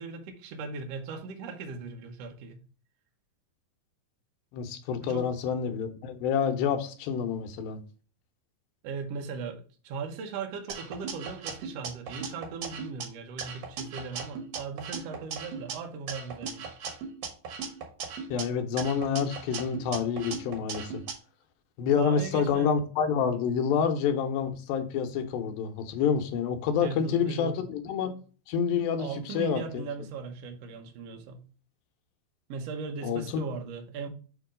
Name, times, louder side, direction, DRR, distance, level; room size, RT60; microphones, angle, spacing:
voice 1, 0.0-2.6 5.0-5.3 8.8-16.7 22.0-22.7 26.8-27.6 29.0-31.5 32.5-34.1, right 5 dB, 85° right, 1.4 m, -38 dB
voice 2, 4.5-7.8 18.3-21.0 21.8-28.1 28.5-29.8 33.0-33.4, left 7 dB, 90° left, 2.6 m, -28 dB
sound 1, 10.7-13.0 13.4-15.7 16.1-18.4 18.8-21.1, right 5 dB, 65° right, 1.7 m, -38 dB
6.9 x 3.0 x 4.9 m
omnidirectional pair, 4.1 m